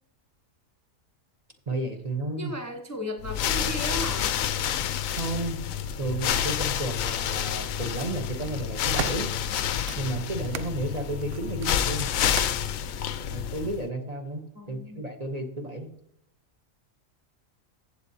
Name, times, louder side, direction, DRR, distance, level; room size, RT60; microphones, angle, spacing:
voice 1, 1.7-2.5 5.2-5.6 6.0-9.3 10.0-12.1 13.3-15.9, right 2 dB, 35° right, 3 dB, 1.0 m, -32 dB
voice 2, 2.4-4.4 14.5-15.0, equal, 15° left, 3 dB, 0.8 m, -35 dB
sound 1, 3.2-13.9, left 9 dB, 85° left, 1.0 m, -29 dB
sound 2, 8.4-10.7 11.2-12.7 13.5-13.6, right 8 dB, 60° right, 0.7 m, -38 dB
15.0 x 7.9 x 2.7 m, 0.74 s
omnidirectional pair, 1.4 m